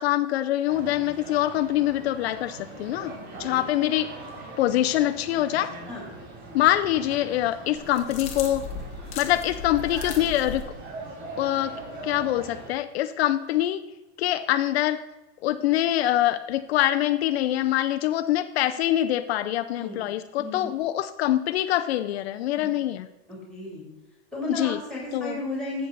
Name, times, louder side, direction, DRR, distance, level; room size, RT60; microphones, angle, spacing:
voice 1, 0.0-3.1 3.4-4.1 4.6-5.7 6.5-8.6 9.2-10.6 11.4-11.7 12.0-13.8 14.2-15.0 15.4-23.1 24.5-24.8 25.1-25.4, left 13 dB, 70° left, 9 dB, 0.6 m, -24 dB
sound 1, 0.7-12.7, right 2 dB, 75° right, 3.3 m, -41 dB
voice 2, 3.0-3.7 5.9-6.1 19.8-20.0 20.4-20.7 22.6-22.7 23.3-23.8 24.3-25.9, left 2 dB, ahead, -2 dB, 2.9 m, -34 dB
sound 2, 7.7-10.6, left 5 dB, 20° left, 1.1 m, -36 dB
12.0 x 7.9 x 4.0 m, 1.0 s
supercardioid pair, 175°, 33 cm